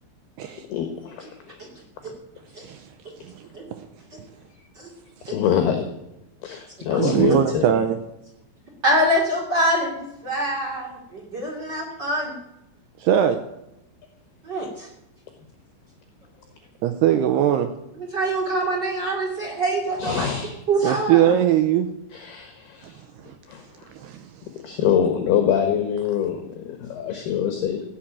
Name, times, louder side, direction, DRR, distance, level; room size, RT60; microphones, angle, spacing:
voice 1, 0.7-1.6 4.5-4.6 5.3-5.8 6.4-7.8 20.0-20.6 22.1-23.0 23.5-23.9 24.6-27.8, left 8 dB, 65° left, 5 dB, 2.9 m, -25 dB
voice 2, 7.0-8.0 13.0-13.4 16.8-17.7 20.8-21.9 23.9-24.2, right 10 dB, 85° right, 7 dB, 2.4 m, -20 dB
voice 3, 8.8-12.4 14.4-14.9 18.0-20.3 20.7-21.3, right 1 dB, 25° right, -1 dB, 2.6 m, -25 dB
16.5 x 7.4 x 8.8 m, 0.86 s
omnidirectional pair, 5.6 m